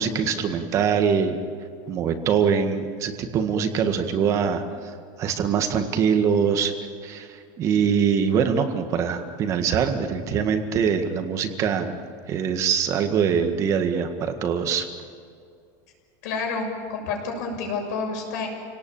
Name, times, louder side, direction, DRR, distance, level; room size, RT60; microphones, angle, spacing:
voice 1, 0.0-1.4 1.9-4.9 5.2-6.7 7.0-11.9 12.3-14.9, right 7 dB, 30° right, 7 dB, 1.8 m, -23 dB
voice 2, 16.2-18.5, left 4 dB, 70° left, 2 dB, 6.8 m, -29 dB
28.5 x 18.5 x 8.9 m, 2.3 s
supercardioid pair, 165°, 10 cm